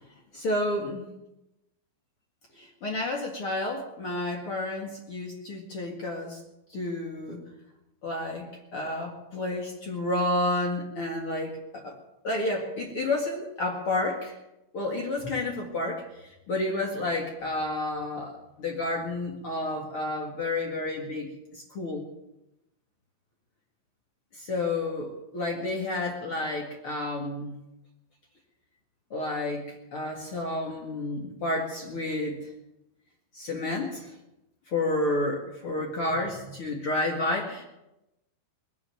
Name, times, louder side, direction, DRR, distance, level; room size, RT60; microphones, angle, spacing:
voice 1, 0.3-1.0 2.6-6.4 6.7-7.4 8.0-8.5 8.7-12.0 12.2-14.4 14.7-16.0 16.5-22.0 24.3-27.6 29.1-32.4 33.3-34.1 34.7-37.7, left 2 dB, 55° left, 0 dB, 1.5 m, -30 dB
20.5 x 8.8 x 7.7 m, 0.91 s
omnidirectional pair, 5.6 m